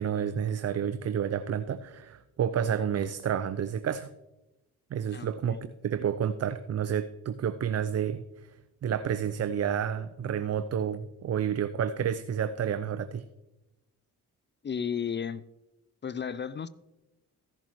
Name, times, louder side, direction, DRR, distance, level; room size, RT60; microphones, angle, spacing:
voice 1, 0.0-4.1 4.9-8.2 8.8-13.2, right 8 dB, 40° right, 13 dB, 0.5 m, -30 dB
voice 2, 5.1-5.6 14.6-15.4 16.0-16.7, left 7 dB, 30° left, 17 dB, 0.4 m, -33 dB
15.0 x 7.1 x 3.0 m, 1.0 s
supercardioid pair, 55°, 39 cm